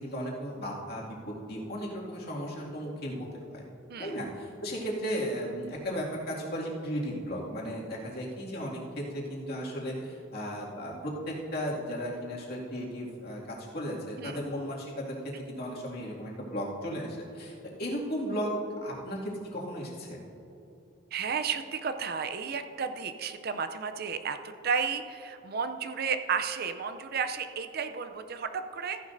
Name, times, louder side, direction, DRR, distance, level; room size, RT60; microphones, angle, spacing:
voice 1, 0.0-3.6 4.0-18.5 18.8-20.2, equal, 50° left, -4 dB, 2.2 m, -35 dB
voice 2, 21.1-29.0, right 6 dB, 50° right, 9 dB, 0.5 m, -33 dB
14.5 x 10.5 x 2.6 m, 2.9 s
head